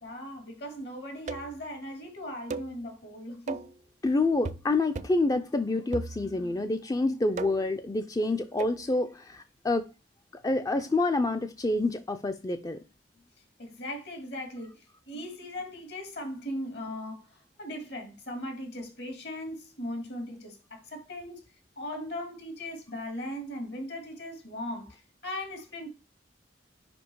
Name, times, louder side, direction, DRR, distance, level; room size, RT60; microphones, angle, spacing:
voice 1, 0.0-3.7 13.6-21.4 21.8-25.9, left 1 dB, 65° left, 2.5 m, -38 dB
sound 1, 1.3-1.6 2.5-2.8 3.5-3.8 4.4-4.7 5.0-5.3 5.9-6.5 7.4-7.8 8.6-8.8, right 3 dB, 40° right, 0.4 m, -37 dB
voice 2, 4.0-9.9 10.4-12.8, left 2 dB, 20° left, 0.4 m, -27 dB
5.4 x 5.1 x 4.6 m
head